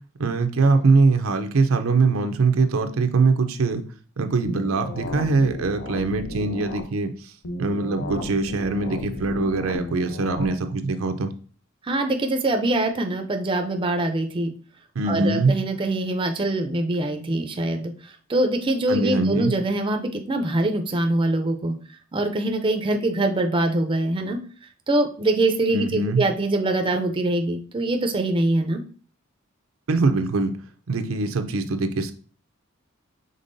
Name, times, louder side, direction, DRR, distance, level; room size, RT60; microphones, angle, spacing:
voice 1, 0.2-3.8 4.2-7.3 7.6-11.3 15.0-15.5 18.9-19.5 25.7-26.2 29.9-30.5 30.9-32.1, right 3 dB, 85° right, 7 dB, 0.5 m, -22 dB
sound 1, 4.4-6.8 7.4-10.4, left 2 dB, 75° left, 0.7 m, -34 dB
voice 2, 11.8-14.5 15.0-21.8 22.1-24.4 24.9-28.8, right 2 dB, 25° right, 5 dB, 0.4 m, -24 dB
5.3 x 3.6 x 2.6 m, 0.42 s
head